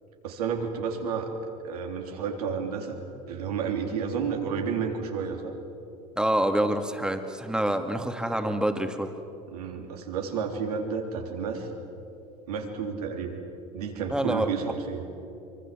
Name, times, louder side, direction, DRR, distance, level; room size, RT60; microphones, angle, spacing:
voice 1, 0.2-1.3 1.6-3.0 3.3-5.5 9.5-11.7 12.5-13.4 13.7-15.0, right 6 dB, 80° right, 3 dB, 3.6 m, -31 dB
voice 2, 6.2-9.1 14.1-14.5, right 1 dB, 5° right, 6 dB, 2.5 m, -26 dB
24.5 x 24.5 x 7.7 m, 2.8 s
hypercardioid pair, 75°, 20 cm